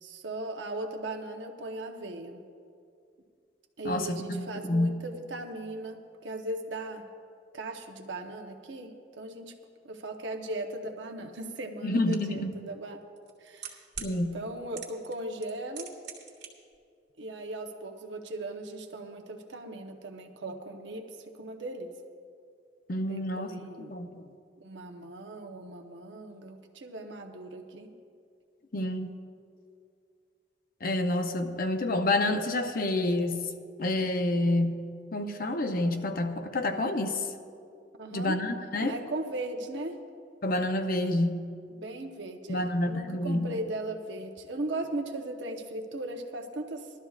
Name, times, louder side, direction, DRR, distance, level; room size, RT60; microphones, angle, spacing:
voice 1, 0.0-2.4 3.8-7.1 7.5-9.5 9.8-13.0 13.4-13.8 14.3-15.9 17.2-21.9 23.1-23.9 24.6-27.9 38.0-38.4 38.9-40.0 41.7-46.9, right 2 dB, 85° right, 3 dB, 0.9 m, -38 dB
voice 2, 3.8-4.9 11.8-12.5 14.0-14.4 22.9-23.5 23.9-24.2 28.7-29.1 30.8-33.5 33.8-34.8 35.1-37.3 38.1-38.9 40.4-41.5 42.5-43.6, left 1 dB, 50° left, 6 dB, 0.7 m, -28 dB
sound 1, 12.1-12.2 13.2-14.1 14.8-15.2 15.4-16.5 16.7-16.8, right 8 dB, 70° right, 1.6 m, -40 dB
19.5 x 12.5 x 2.4 m, 2.4 s
head